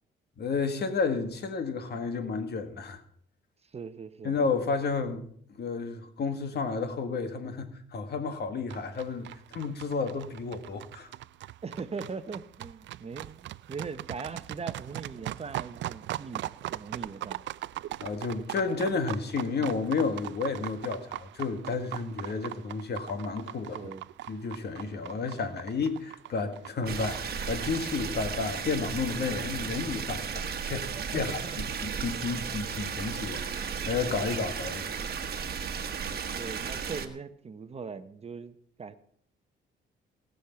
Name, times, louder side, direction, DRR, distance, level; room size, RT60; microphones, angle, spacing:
voice 1, 0.4-3.0 4.2-5.2 5.6-11.1 18.0-23.9 24.3-31.4 31.8-34.9, left 4 dB, 55° left, 1.8 m, -31 dB
voice 2, 3.7-4.3 11.6-17.4 23.7-24.1 30.9-31.8 36.4-38.9, right 5 dB, 30° right, 0.9 m, -40 dB
sound 1, 8.7-27.5, right 14 dB, 70° right, 0.4 m, -40 dB
sound 2, 26.9-37.1, right 6 dB, 50° right, 1.4 m, -34 dB
18.5 x 6.6 x 5.8 m
cardioid pair, 90°, 20 cm